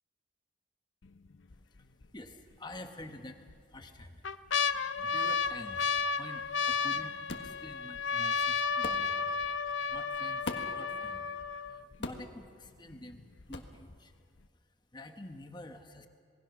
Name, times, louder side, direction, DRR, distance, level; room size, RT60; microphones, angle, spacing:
sound 1, 1.0-1.5 2.0-2.1 3.0-3.5 4.0-12.0 12.7-12.8 12.9-13.4 13.9-14.0, left 5 dB, 85° left, 0.7 m, -32 dB
voice 1, 1.6-4.3 4.6-4.7 5.0-9.2 9.7-11.3 11.6-14.1 14.6-16.1, left 1 dB, 25° left, 6 dB, 1.3 m, -49 dB
sound 2, 7.3-7.5 8.8-9.1 10.4-10.8 12.0-12.3 13.5-13.7, left 2 dB, 70° left, 1.6 m, -39 dB
27.5 x 20.0 x 6.2 m, 2.1 s
head